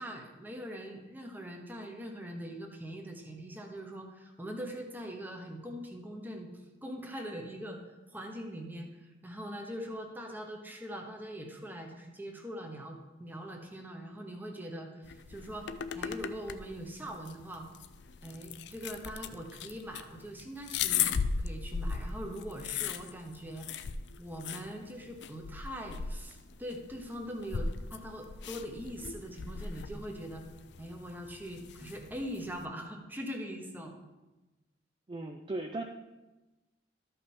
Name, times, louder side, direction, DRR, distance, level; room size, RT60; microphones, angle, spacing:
voice 1, 0.0-6.5 6.8-7.8 8.1-15.7 15.9-17.7 18.2-23.7 24.2-30.4 30.8-34.0, equal, 10° right, 2 dB, 1.0 m, -42 dB
sound 1, 15.0-32.6, left 6 dB, 65° left, 0.4 m, -38 dB
voice 2, 35.1-35.8, right 2 dB, 25° right, 2 dB, 0.5 m, -37 dB
13.0 x 5.4 x 4.3 m, 1.1 s
head